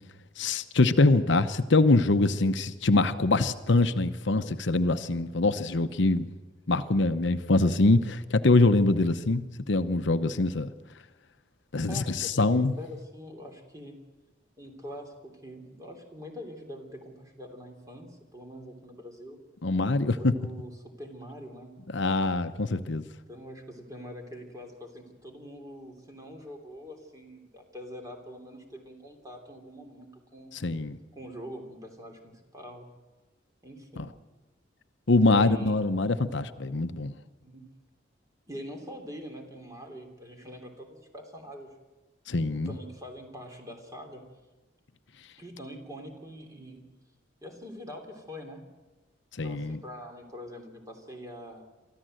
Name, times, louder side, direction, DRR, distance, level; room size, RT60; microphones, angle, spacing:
voice 1, 0.4-6.3 6.7-10.7 11.7-12.7 19.6-20.3 21.9-23.0 30.6-31.0 34.0-34.1 35.1-37.1 42.3-42.7 49.4-49.8, left 2 dB, 65° left, 0.9 m, -24 dB
voice 2, 11.9-14.0 14.6-19.4 20.2-21.8 23.3-30.6 31.1-32.9 33.6-34.1 35.2-35.7 37.4-37.7 38.5-41.7 42.6-44.3 45.4-46.9 47.4-48.7 49.4-51.6, equal, 20° right, 3.2 m, -44 dB
24.0 x 14.5 x 7.8 m
head